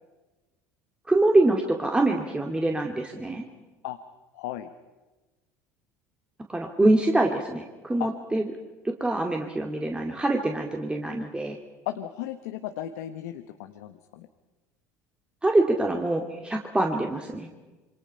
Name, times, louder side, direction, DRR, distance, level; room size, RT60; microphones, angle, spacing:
voice 1, 1.1-3.4 6.5-8.4 8.8-11.6 15.4-17.5, right 2 dB, 10° right, 2 dB, 2.2 m, -24 dB
voice 2, 4.3-4.7 8.0-8.1 11.9-14.3, left 12 dB, 75° left, 8 dB, 1.1 m, -35 dB
27.0 x 24.0 x 5.7 m, 1.2 s
hypercardioid pair, 75°, 8 cm